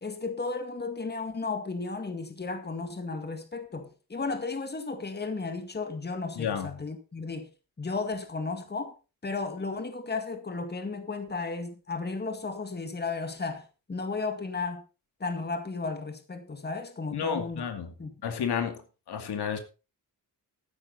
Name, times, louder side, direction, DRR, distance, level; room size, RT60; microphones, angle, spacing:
voice 1, 0.0-7.5 7.8-8.9 9.2-14.8 15.2-17.6 18.0-18.2, left 3 dB, 25° left, 2.0 m, -34 dB
voice 2, 6.4-6.7 17.1-17.9 18.2-18.8 19.1-19.6, left 7 dB, 85° left, 2.4 m, -31 dB
13.5 x 10.0 x 4.1 m
wide cardioid pair, 115°, 39 cm